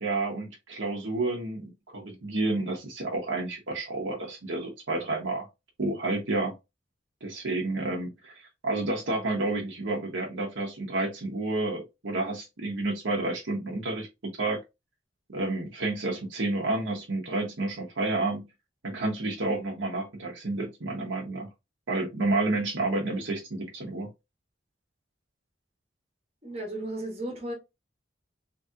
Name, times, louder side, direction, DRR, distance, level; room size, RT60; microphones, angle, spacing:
voice 1, 0.0-5.5 5.8-6.5 7.2-14.1 14.4-14.6 15.3-18.5 18.8-21.5 21.9-24.1, right 2 dB, 80° right, 0.9 m, -30 dB
voice 2, 26.4-27.5, right 1 dB, 30° right, 1.2 m, -34 dB
3.0 x 2.8 x 2.4 m
head